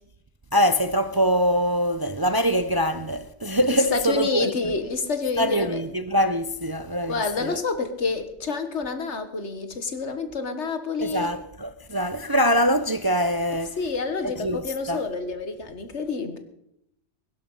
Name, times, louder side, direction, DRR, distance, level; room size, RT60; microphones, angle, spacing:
voice 1, 0.5-4.5 5.4-7.6 11.0-13.8 14.4-14.6 14.9-15.0, equal, 25° right, 0.5 m, -23 dB
voice 2, 3.7-5.8 7.1-11.3 13.8-16.4, left 4 dB, 70° left, 1.8 m, -28 dB
21.0 x 11.5 x 5.5 m
omnidirectional pair, 1.2 m